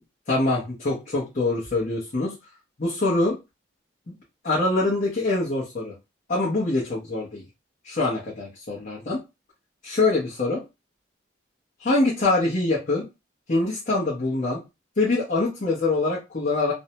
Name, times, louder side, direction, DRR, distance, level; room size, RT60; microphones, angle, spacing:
voice 1, 0.3-2.3 2.8-3.4 4.1-4.2 4.4-5.9 6.3-7.4 7.8-9.2 9.8-10.6 11.8-13.0 13.5-14.6 15.0-16.7, left 2 dB, 45° left, -6 dB, 0.8 m, -24 dB
2.6 x 2.1 x 2.8 m, 0.25 s
head